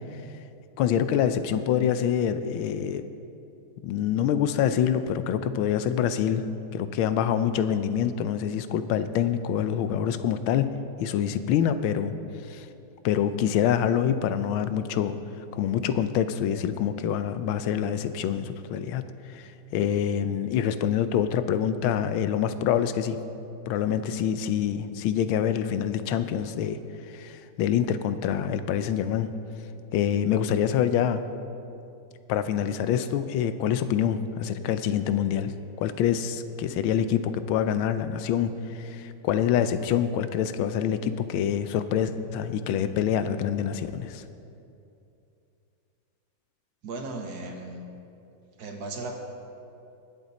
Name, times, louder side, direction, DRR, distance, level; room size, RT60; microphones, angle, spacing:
voice 1, 0.8-3.0 3.8-6.4 6.7-10.7 11.0-12.1 12.5-12.7 13.0-15.2 15.5-19.0 19.3-23.2 23.7-26.8 27.1-29.3 29.9-31.2 32.3-44.2, left 9 dB, 90° left, 11 dB, 1.4 m, -26 dB
voice 2, 46.8-47.9 48.6-49.2, right 2 dB, 55° right, 3 dB, 1.5 m, -36 dB
20.0 x 8.0 x 4.1 m, 2.7 s
omnidirectional pair, 2.2 m